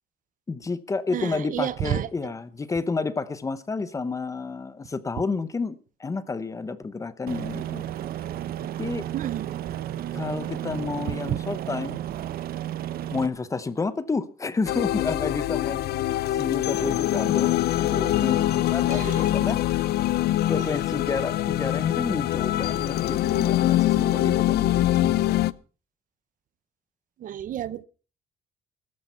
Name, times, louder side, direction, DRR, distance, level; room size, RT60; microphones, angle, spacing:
voice 1, 0.5-7.9 8.6-9.1 10.1-12.0 13.1-19.8 20.5-25.5, left 4 dB, 20° left, 0.8 m, -30 dB
voice 2, 1.1-2.3 9.1-9.5 11.3-11.4 18.9-19.3 20.6-20.7 25.0-25.1 27.2-27.8, right 11 dB, 55° right, 0.7 m, -30 dB
Aircraft, 7.3-13.3, right 12 dB, 70° right, 1.0 m, -33 dB
sound 1, 14.7-25.5, left 14 dB, 85° left, 0.6 m, -24 dB
14.0 x 12.5 x 5.7 m
cardioid pair, 170°, 16 cm